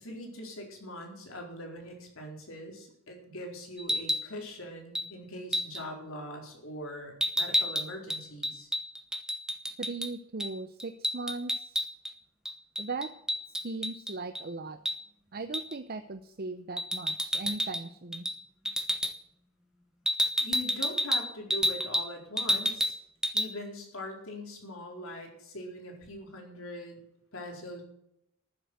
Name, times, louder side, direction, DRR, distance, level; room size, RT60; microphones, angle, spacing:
voice 1, 0.0-8.7 20.4-22.9 23.3-27.0 27.3-27.8, left 1 dB, 65° left, 1 dB, 4.4 m, -42 dB
sound 1, 3.8-4.3 5.0-5.1 5.5-5.8 7.2-10.1 10.4-10.5 10.8-12.1 12.5-14.4 14.9-15.0 15.5-15.8 16.8-17.8 18.1-18.4 18.7-19.1 20.1-22.1 22.4-23.0 23.2-23.5, equal, 5° right, 1.0 m, -30 dB
voice 2, 9.8-11.7 12.8-13.1 13.6-14.8 15.3-18.2, right 3 dB, 45° right, 9 dB, 0.7 m, -38 dB
14.0 x 7.9 x 7.9 m, 0.78 s
head